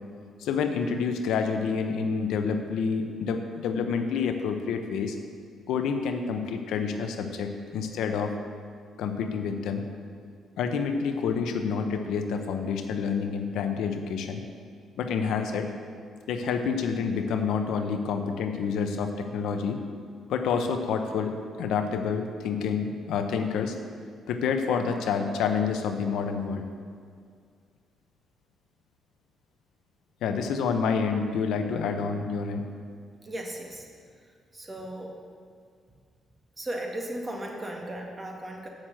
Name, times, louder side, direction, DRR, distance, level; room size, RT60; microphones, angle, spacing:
voice 1, 0.4-5.2 5.7-8.3 9.0-9.8 10.6-14.4 15.0-15.7 16.3-19.8 20.3-23.7 24.3-26.6 30.2-32.6, left 6 dB, 85° left, 6 dB, 0.8 m, -28 dB
voice 2, 33.2-33.9 34.5-35.2 36.6-38.7, right 1 dB, 25° right, 1 dB, 1.7 m, -36 dB
7.5 x 6.6 x 7.5 m, 2.1 s
cardioid pair, 90°, 0 cm